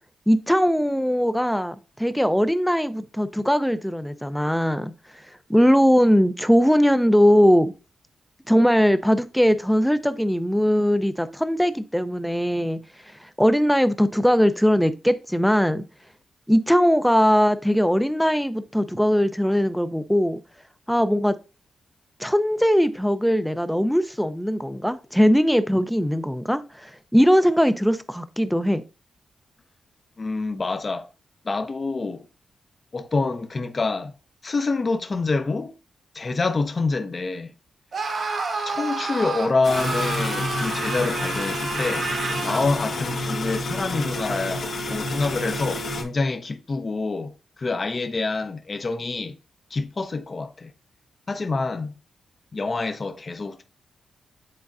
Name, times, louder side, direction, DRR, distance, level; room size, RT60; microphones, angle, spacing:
voice 1, 0.3-4.9 5.5-7.7 8.5-12.8 13.2-15.8 16.5-20.4 20.9-21.4 22.2-28.8, equal, ahead, 0.6 m, -20 dB
voice 2, 30.2-31.1 31.4-32.2 32.9-34.1 34.4-35.7 36.1-37.5 38.6-42.1 42.4-49.4 49.7-50.7 51.3-51.9 52.5-53.6, left 3 dB, 40° left, 0.7 m, -26 dB
Screaming, 37.9-42.8, right 3 dB, 60° right, 1.5 m, -29 dB
sound 1, 39.6-46.0, left 2 dB, 75° left, 1.4 m, -29 dB
9.6 x 3.8 x 2.6 m
cardioid pair, 80°, 0 cm